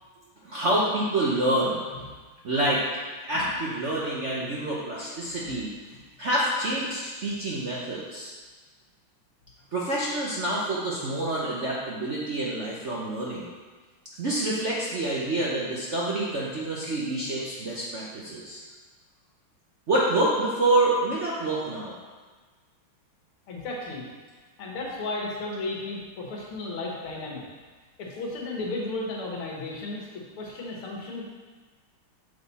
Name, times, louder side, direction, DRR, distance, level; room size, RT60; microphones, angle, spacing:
voice 1, 0.4-1.8 2.4-2.8 3.2-5.7 6.2-8.3 9.7-13.5 14.2-18.6 19.9-21.9, right 1 dB, 55° right, -5 dB, 0.8 m, -27 dB
voice 2, 5.3-5.6 5.9-6.0 23.5-24.1 24.6-27.4 28.0-31.2, left 2 dB, 85° left, -2 dB, 2.2 m, -34 dB
6.3 x 5.8 x 4.1 m, 1.4 s
omnidirectional pair, 2.3 m